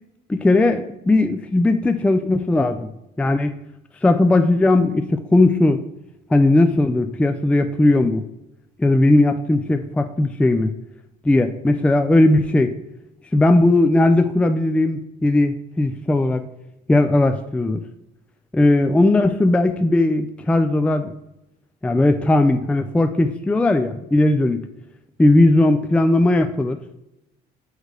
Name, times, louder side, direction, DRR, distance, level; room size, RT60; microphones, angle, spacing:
voice 1, 0.3-2.9 3.2-3.6 4.0-5.8 6.3-8.2 8.8-10.7 11.2-12.7 13.3-16.4 16.9-17.8 18.5-21.1 21.8-24.6 25.2-26.8, left 2 dB, 5° left, 7 dB, 0.3 m, -17 dB
6.3 x 4.8 x 3.3 m, 0.89 s
cardioid pair, 110°, 17 cm